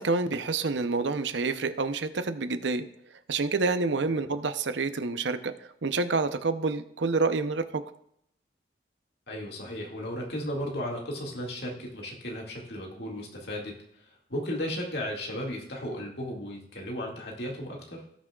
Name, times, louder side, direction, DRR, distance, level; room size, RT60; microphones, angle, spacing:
voice 1, 0.0-2.8 3.3-7.8, right 3 dB, 80° right, 10 dB, 0.7 m, -28 dB
voice 2, 9.3-13.7 14.3-18.0, equal, 60° left, -1 dB, 2.1 m, -35 dB
18.0 x 6.2 x 2.4 m, 0.73 s
head